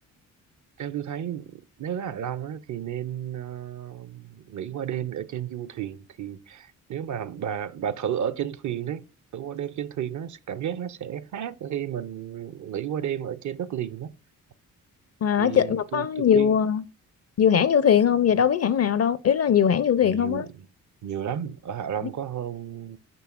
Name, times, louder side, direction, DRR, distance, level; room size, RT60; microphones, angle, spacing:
voice 1, 0.8-1.5 1.8-9.0 9.3-14.1 15.4-16.5 20.0-20.5 21.0-23.0, right 9 dB, 50° right, 0.6 m, -32 dB
voice 2, 15.2-16.8 17.4-20.5 22.0-22.1, left 8 dB, 40° left, 0.5 m, -21 dB
6.8 x 5.6 x 2.4 m
hypercardioid pair, 45°, 39 cm